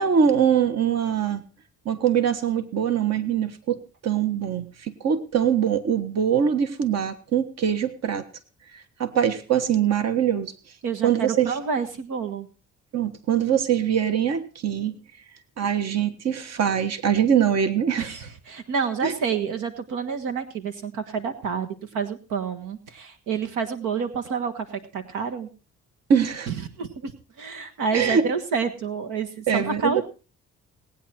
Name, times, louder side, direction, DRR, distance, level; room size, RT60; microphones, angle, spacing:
voice 1, 0.0-1.4 1.8-8.2 8.7-10.5 11.0-11.5 12.9-15.0 15.6-18.1 19.0-19.1 26.1-26.5 27.9-28.3 29.5-30.0, right 8 dB, 60° right, 10 dB, 1.5 m, -23 dB
voice 2, 10.8-12.5 18.0-25.5 26.5-27.1 27.4-30.0, right 5 dB, 90° right, 7 dB, 1.5 m, -29 dB
19.0 x 9.3 x 4.4 m, 0.34 s
cardioid pair, 90°, 30 cm